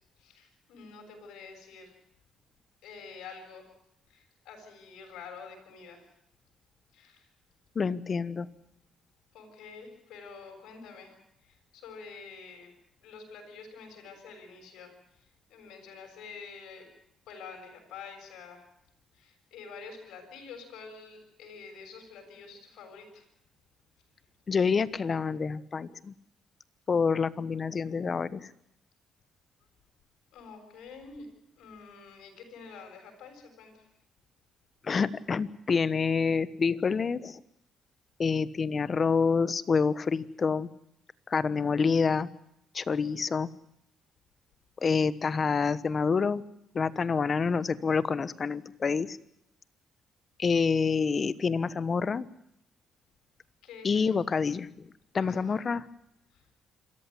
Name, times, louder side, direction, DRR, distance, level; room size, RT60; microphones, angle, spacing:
voice 1, 0.2-1.9 2.8-3.7 4.1-6.0 6.9-7.3 9.3-11.1 11.4-12.7 13.0-14.9 15.5-16.9 17.3-18.6 19.1-23.2 30.3-31.3 31.6-33.8 53.6-54.2 55.1-55.6 56.3-56.4, left 5 dB, 85° left, 4 dB, 6.8 m, -47 dB
voice 2, 7.7-8.5 24.5-26.1 26.9-28.5 34.8-37.4 38.2-40.7 41.3-42.3 42.7-43.5 44.8-46.4 46.7-49.2 50.4-52.3 53.8-54.9 55.1-55.8, left 5 dB, 40° left, 16 dB, 1.1 m, -27 dB
26.5 x 14.5 x 9.8 m, 0.78 s
cardioid pair, 90°, 0 cm